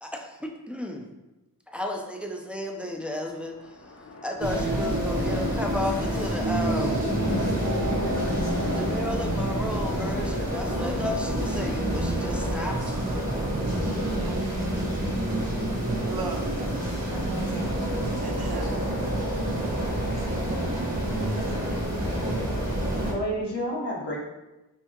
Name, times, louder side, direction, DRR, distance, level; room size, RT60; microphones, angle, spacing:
voice 1, 0.0-1.1 1.7-3.9 4.2-7.1 8.7-13.0, left 1 dB, 5° right, 2 dB, 0.5 m, -33 dB
sound 1, 3.2-13.6, left 2 dB, 35° left, 0.7 m, -36 dB
sound 2, 4.4-23.1, right 1 dB, 40° right, 1.5 m, -28 dB
voice 2, 14.2-18.7 19.8-21.3, right 3 dB, 65° right, 3 dB, 0.7 m, -41 dB
voice 3, 22.9-24.2, equal, 80° left, -4 dB, 1.3 m, -30 dB
5.6 x 2.8 x 3.0 m, 1.0 s
wide cardioid pair, 45°, 40 cm